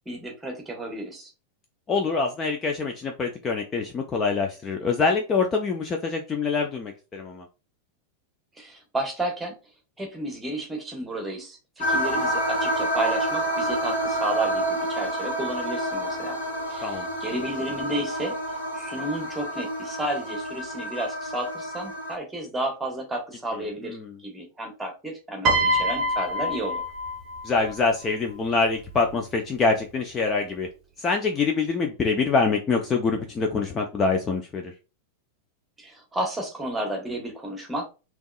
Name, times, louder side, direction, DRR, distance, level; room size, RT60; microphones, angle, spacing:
voice 1, 0.0-1.3 8.6-9.6 10.0-16.4 16.7-18.4 18.7-24.0 24.2-26.8 35.8-37.9, right 1 dB, 10° right, 2 dB, 1.3 m, -32 dB
voice 2, 1.9-7.5 16.8-17.1 23.5-24.2 27.4-30.7 31.0-34.7, left 4 dB, 25° left, 2 dB, 0.6 m, -25 dB
sound 1, 11.8-22.1, right 1 dB, 70° left, 1.6 m, -28 dB
Piano, 25.4-27.8 28.8-29.1, right 1 dB, 35° right, 0.7 m, -25 dB
3.5 x 3.0 x 2.4 m, 0.31 s
figure-of-eight pair, 90°, 0 cm